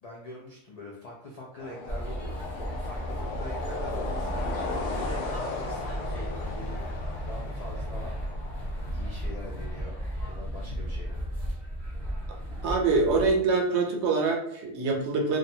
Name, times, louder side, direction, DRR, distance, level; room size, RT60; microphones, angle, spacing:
voice 1, 0.0-6.8 7.3-8.1 8.4-8.5 8.9-10.0 10.3-11.5, left 1 dB, 60° left, -4 dB, 0.4 m, -43 dB
sound 1, 1.6-10.1, left 3 dB, 75° left, 0.9 m, -37 dB
sound 2, 1.9-13.3, equal, ahead, 0.8 m, -34 dB
voice 2, 12.6-15.4, right 4 dB, 70° right, 1 dB, 0.8 m, -25 dB
2.5 x 2.1 x 2.7 m, 0.74 s
omnidirectional pair, 1.2 m